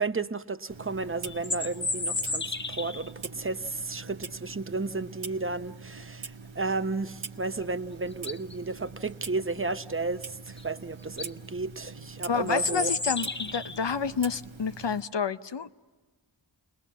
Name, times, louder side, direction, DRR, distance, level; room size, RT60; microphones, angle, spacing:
voice 1, 0.0-12.9, right 3 dB, 30° right, 0.8 m, -33 dB
Clock, 0.7-15.0, right 5 dB, 80° right, 1.0 m, -44 dB
sound 1, 1.2-3.1 7.6-7.7 8.1-8.5 10.6-10.7 11.0-11.3 12.5-13.8, left 3 dB, 25° left, 0.7 m, -32 dB
voice 2, 12.3-15.7, left 6 dB, 65° left, 0.8 m, -29 dB
30.0 x 20.5 x 7.4 m
wide cardioid pair, 45°, 46 cm